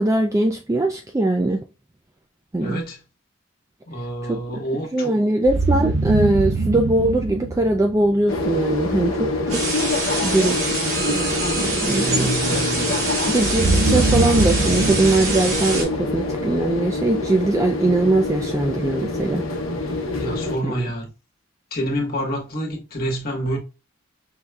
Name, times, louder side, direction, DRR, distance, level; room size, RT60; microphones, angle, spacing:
voice 1, 0.0-1.6 2.5-2.8 4.2-4.6 4.9-9.6 10.1-12.3 13.2-19.4 20.6-20.7, right 2 dB, 15° right, 0.3 m, -21 dB
voice 2, 2.6-3.0 3.9-5.1 11.0-11.1 11.9-13.2 20.2-21.1 21.7-23.6, right 1 dB, 45° left, 1.3 m, -28 dB
sound 1, 5.4-8.4 13.4-16.6, right 3 dB, 65° right, 0.6 m, -23 dB
sound 2, 8.3-20.6, left 2 dB, 75° left, 0.9 m, -26 dB
sound 3, 9.5-15.8, right 2 dB, 85° right, 2.5 m, -26 dB
5.6 x 3.1 x 2.3 m
head